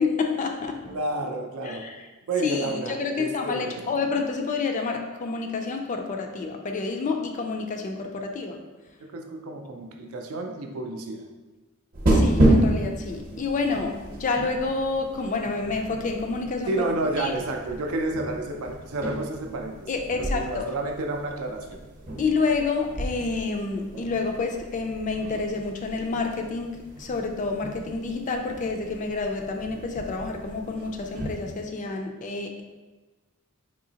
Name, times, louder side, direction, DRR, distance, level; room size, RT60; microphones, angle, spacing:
voice 1, 0.0-0.8 1.6-2.1 2.4-8.6 12.1-16.9 17.2-17.3 19.9-20.7 22.2-32.6, left 4 dB, 35° left, 4 dB, 0.3 m, -29 dB
voice 2, 0.8-1.8 2.3-3.8 9.1-11.2 16.7-19.7 20.2-21.8, right 2 dB, 75° right, 3 dB, 0.5 m, -30 dB
sound 1, 11.9-31.6, right 1 dB, 40° right, 0.8 m, -30 dB
3.7 x 2.8 x 2.8 m, 1.2 s
head